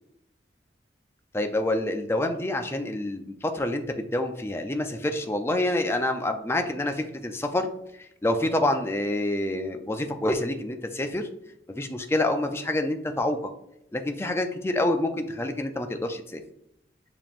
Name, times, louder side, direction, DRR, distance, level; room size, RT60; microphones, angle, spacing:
voice 1, 1.3-7.7 8.0-11.3 11.7-13.4 13.9-16.4, left 1 dB, 15° left, 5 dB, 0.4 m, -27 dB
7.0 x 2.9 x 2.5 m, 0.77 s
head